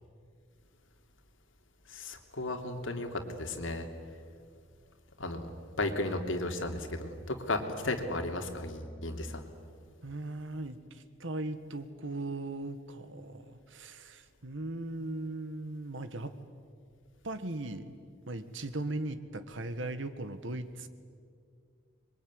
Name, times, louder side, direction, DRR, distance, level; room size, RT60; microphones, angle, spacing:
voice 1, 1.9-3.9 5.2-5.5 5.8-9.4, left 2 dB, 75° left, 4 dB, 3.0 m, -34 dB
voice 2, 10.0-16.3 17.2-17.9 18.3-20.9, right 2 dB, 70° right, 11 dB, 1.7 m, -38 dB
26.0 x 23.0 x 9.7 m, 2.2 s
head